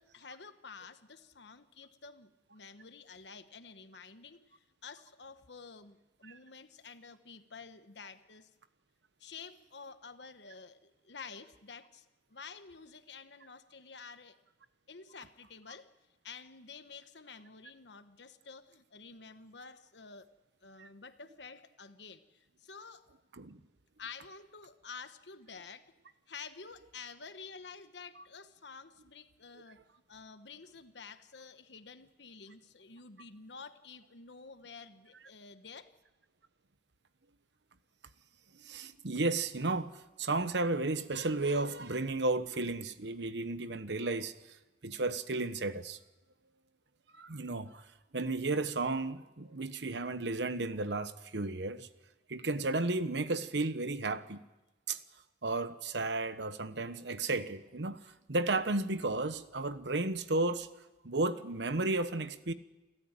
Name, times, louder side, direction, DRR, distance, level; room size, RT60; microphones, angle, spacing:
voice 1, 0.0-8.5 9.2-14.4 14.9-15.9 16.2-20.3 20.6-23.1 24.0-25.9 26.3-29.8 30.1-35.9, left 5 dB, 75° left, 1.2 m, -50 dB
voice 2, 38.6-44.3 44.8-46.0 47.1-47.8 48.1-51.9 52.3-54.4 54.9-55.0 55.4-60.7 61.0-62.5, right 2 dB, 75° right, 1.1 m, -33 dB
28.5 x 13.0 x 8.9 m
head